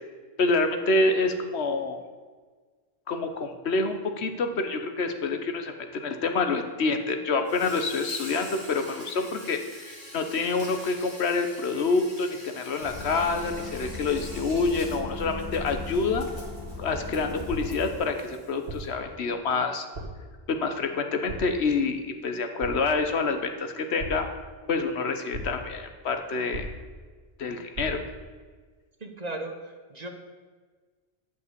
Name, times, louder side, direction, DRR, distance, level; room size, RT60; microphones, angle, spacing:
voice 1, 0.4-2.0 3.1-16.3 16.8-19.9 20.5-24.3 24.7-26.7 27.4-28.0, left 3 dB, 75° left, 7 dB, 1.2 m, -27 dB
Insect, 7.4-18.9, left 1 dB, 25° left, 2.0 m, -45 dB
sound 1, 12.8-18.0, left 2 dB, 20° right, 1.6 m, -38 dB
sound 2, 17.5-18.0 18.7-19.1 19.9-20.3 21.3-21.7 22.6-23.0 24.0-24.5 25.3-25.8 26.5-27.1 27.7-28.2, right 1 dB, 60° right, 1.9 m, -37 dB
voice 2, 29.0-30.1, right 2 dB, 40° right, 5 dB, 1.0 m, -36 dB
9.5 x 5.4 x 8.1 m, 1.5 s
omnidirectional pair, 1.1 m